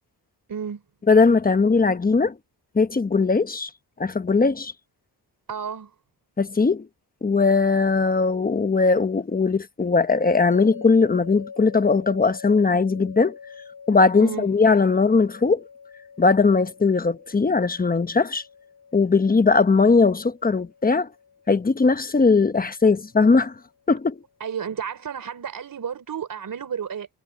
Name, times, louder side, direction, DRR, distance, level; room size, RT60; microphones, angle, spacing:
voice 1, 0.5-0.8 5.5-5.9 14.2-14.5 24.4-27.1, right 7 dB, 55° right, 4.0 m, -32 dB
voice 2, 1.1-2.3 2.7-3.7 4.0-4.7 6.4-6.9 7.2-13.4 13.9-15.6 16.2-18.4 18.9-21.1 21.5-23.5 23.9-24.2, left 4 dB, 20° left, 1.1 m, -19 dB
sound 1, 10.5-23.6, left 6 dB, 60° left, 3.7 m, -45 dB
wide cardioid pair, 135°, 40 cm